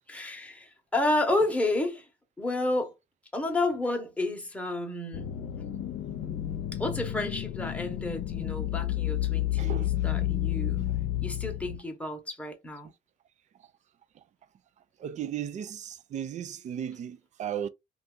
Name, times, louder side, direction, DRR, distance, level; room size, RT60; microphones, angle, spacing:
voice 1, 0.1-2.1 2.4-2.9 3.3-5.3 6.7-10.9 11.2-12.9, left 2 dB, 10° left, 0.9 m, -31 dB
sound 1, 5.1-11.8, left 13 dB, 65° left, 0.6 m, -31 dB
voice 2, 15.0-17.7, right 9 dB, 45° right, 0.4 m, -35 dB
2.6 x 2.4 x 3.6 m
cardioid pair, 110°, 17 cm